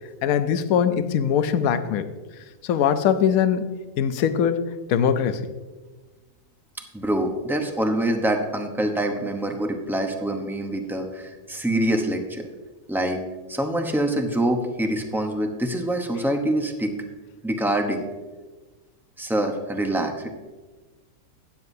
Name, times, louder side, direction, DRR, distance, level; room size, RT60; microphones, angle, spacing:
voice 1, 0.2-2.1 2.6-3.7 4.0-5.5, left 8 dB, 70° left, 11 dB, 1.0 m, -22 dB
voice 2, 6.9-12.4 12.9-13.2 13.5-16.9 17.4-18.0 19.2-20.3, right 1 dB, ahead, 4 dB, 0.6 m, -25 dB
13.0 x 9.6 x 2.7 m, 1.3 s
omnidirectional pair, 1.7 m